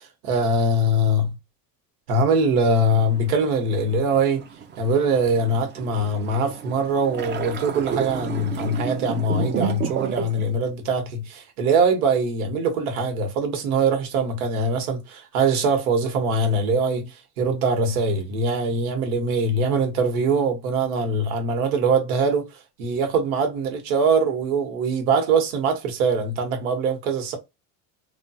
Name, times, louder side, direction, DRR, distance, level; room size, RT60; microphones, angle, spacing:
voice 1, 0.0-1.3 2.1-4.4 4.8-22.5 22.8-27.4, right 2 dB, 90° right, 1.2 m, -22 dB
sound 1, 2.8-10.5, right 7 dB, 25° right, 0.5 m, -32 dB
3.3 x 2.2 x 2.7 m
supercardioid pair, 120°, 42 cm